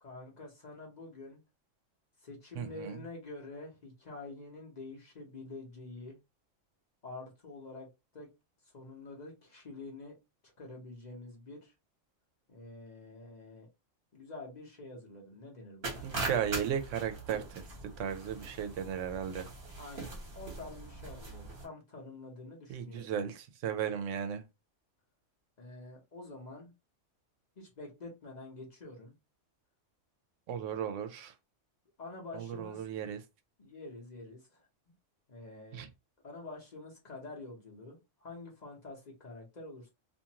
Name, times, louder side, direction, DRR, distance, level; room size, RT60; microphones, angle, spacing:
voice 1, 0.0-1.4 2.2-6.2 7.0-8.3 8.7-10.1 10.6-11.7 12.5-13.7 14.1-16.0 19.8-23.1 25.6-26.7 27.6-29.1 32.0-32.9 33.6-34.7 35.3-35.9 36.2-39.9, left 2 dB, 40° left, 0.8 m, -47 dB
voice 2, 2.6-3.0 16.0-17.7 18.0-19.5 22.7-24.4 30.5-31.3 32.3-33.2 35.7-35.9, right 8 dB, 80° right, 0.9 m, -35 dB
sound 1, 15.8-21.6, right 3 dB, 50° right, 1.1 m, -41 dB
2.6 x 2.4 x 2.8 m
omnidirectional pair, 1.3 m